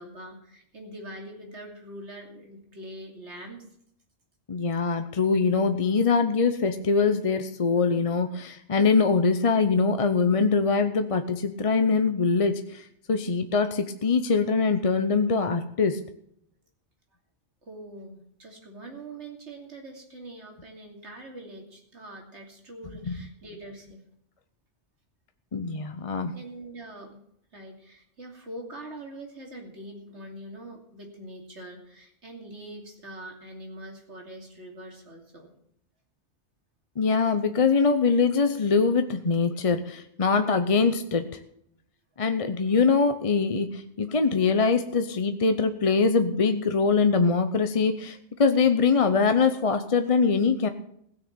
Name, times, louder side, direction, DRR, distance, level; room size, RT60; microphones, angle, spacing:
voice 1, 0.0-3.6 17.6-24.0 26.3-27.2 27.5-35.5, right 1 dB, 75° right, 1 dB, 3.2 m, -43 dB
voice 2, 4.5-16.0 23.1-23.2 25.5-26.3 37.0-41.3 42.2-50.7, left 4 dB, 35° left, 8 dB, 0.7 m, -23 dB
16.5 x 6.4 x 8.7 m, 0.71 s
omnidirectional pair, 1.2 m